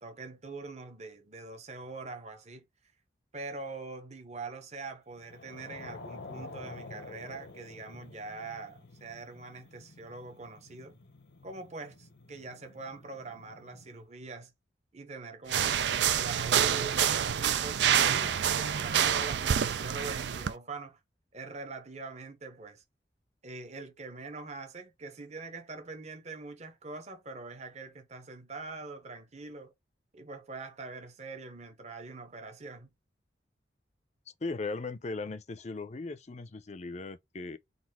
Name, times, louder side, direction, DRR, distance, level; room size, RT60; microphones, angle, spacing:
voice 1, 0.0-2.7 3.3-11.0 11.4-14.5 14.9-21.0 21.3-22.8 23.4-29.7 30.1-32.9, right 3 dB, 40° right, 1.0 m, -43 dB
sound 1, 5.2-13.9, left 2 dB, 70° left, 1.0 m, -49 dB
sound 2, 15.5-20.5, right 9 dB, 75° right, 0.5 m, -27 dB
voice 2, 34.4-37.6, left 3 dB, 40° left, 0.5 m, -38 dB
4.1 x 2.6 x 4.3 m
head